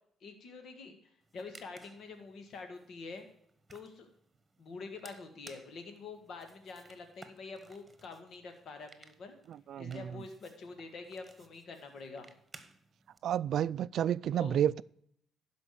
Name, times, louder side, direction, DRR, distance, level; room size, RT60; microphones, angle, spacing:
voice 1, 0.2-3.3 3.7-4.1 4.6-9.4 9.8-12.3 14.3-14.6, left 4 dB, 65° left, 1.9 m, -46 dB
sound 1, 1.2-13.2, right 3 dB, 25° right, 1.4 m, -59 dB
voice 2, 9.5-10.0 13.2-14.8, right 10 dB, 70° right, 0.3 m, -30 dB
12.0 x 5.2 x 6.7 m
cardioid pair, 90°, 0 cm